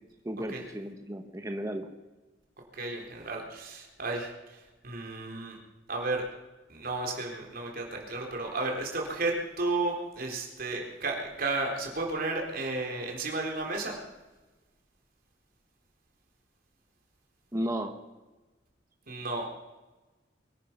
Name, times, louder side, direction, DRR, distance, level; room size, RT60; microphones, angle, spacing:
voice 1, 0.2-1.9 17.5-18.0, equal, 20° right, 5 dB, 1.2 m, -34 dB
voice 2, 2.7-4.3 4.8-5.6 5.9-6.2 6.7-14.0 19.1-19.4, right 2 dB, 55° right, 1 dB, 3.9 m, -33 dB
23.0 x 10.5 x 6.0 m, 1.1 s
head